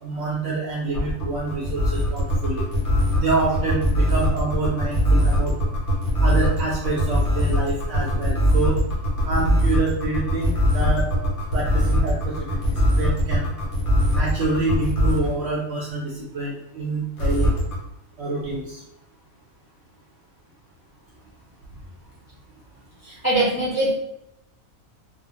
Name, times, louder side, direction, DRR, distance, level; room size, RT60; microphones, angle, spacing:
voice 1, 0.0-2.7 3.1-5.5 6.2-8.8 9.2-11.1 11.5-12.6 13.0-13.5 14.1-17.5 18.2-18.8, right 3 dB, 65° right, -4 dB, 0.7 m, -27 dB
sound 1, 0.9-15.3 17.2-17.8, equal, 60° left, 0.9 m, -21 dB
voice 2, 23.0-23.9, right 1 dB, 15° left, -8 dB, 0.8 m, -22 dB
2.4 x 2.1 x 2.9 m, 0.81 s
omnidirectional pair, 1.4 m